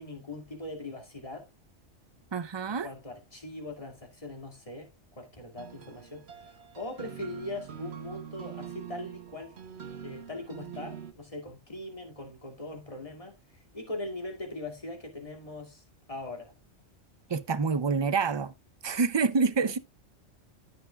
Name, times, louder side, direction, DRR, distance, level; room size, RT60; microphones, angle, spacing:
voice 1, 0.0-1.5 2.7-9.6 10.0-16.5, left 2 dB, 30° left, 2.5 m, -41 dB
voice 2, 2.3-2.9 17.3-18.5 18.8-19.8, right 5 dB, 45° right, 0.3 m, -27 dB
sound 1, 5.6-11.1, right 8 dB, 60° right, 1.2 m, -44 dB
13.5 x 6.0 x 2.3 m
omnidirectional pair, 1.3 m